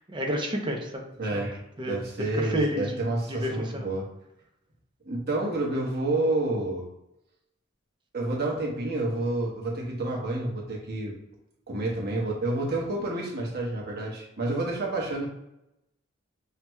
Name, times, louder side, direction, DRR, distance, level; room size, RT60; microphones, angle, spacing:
voice 1, 0.0-1.0 1.8-2.0 2.3-3.9, equal, 25° right, 1 dB, 0.7 m, -30 dB
voice 2, 1.2-4.1 5.0-6.9 8.1-11.1 11.7-15.3, right 2 dB, 55° right, -2 dB, 1.1 m, -29 dB
6.1 x 2.8 x 2.2 m, 0.87 s
head